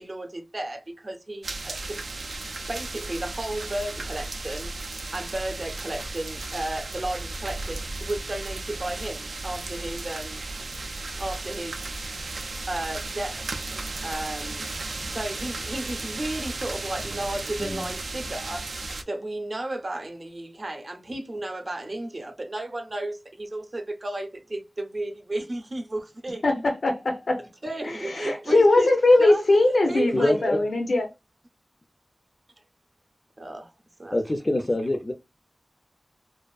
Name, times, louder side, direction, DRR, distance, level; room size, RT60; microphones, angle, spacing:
voice 1, 0.0-2.0 2.7-4.7 5.1-10.4 11.2-11.8 12.7-13.5 14.0-14.7 15.0-18.7 19.1-26.6 27.6-29.5 29.9-30.6 33.4-33.7 34.0-34.4, right 1 dB, 45° right, 0.6 m, -33 dB
sound 1, 1.4-19.0, right 2 dB, 85° right, 0.3 m, -35 dB
voice 2, 26.4-27.4 27.8-31.1, left 2 dB, 90° left, 0.5 m, -21 dB
voice 3, 30.1-30.6 34.1-35.1, left 1 dB, 35° left, 0.3 m, -25 dB
2.4 x 2.4 x 2.3 m
wide cardioid pair, 75°, 0 cm